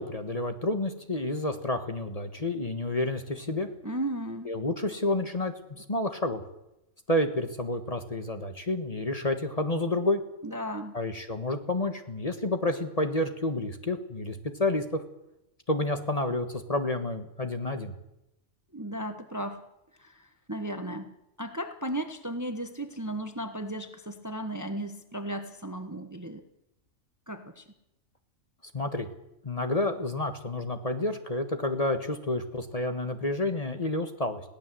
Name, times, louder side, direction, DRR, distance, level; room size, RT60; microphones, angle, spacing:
voice 1, 0.0-3.7 4.4-6.4 7.1-10.2 10.9-15.0 15.7-17.9 28.7-29.1 29.4-34.4, left 2 dB, 30° left, 7 dB, 1.6 m, -29 dB
voice 2, 3.8-4.5 10.4-11.0 18.7-19.6 20.0-20.1 20.5-21.1 21.4-26.4 27.3-27.6, right 1 dB, 15° right, 7 dB, 1.2 m, -35 dB
21.5 x 17.0 x 7.7 m, 0.86 s
omnidirectional pair, 1.4 m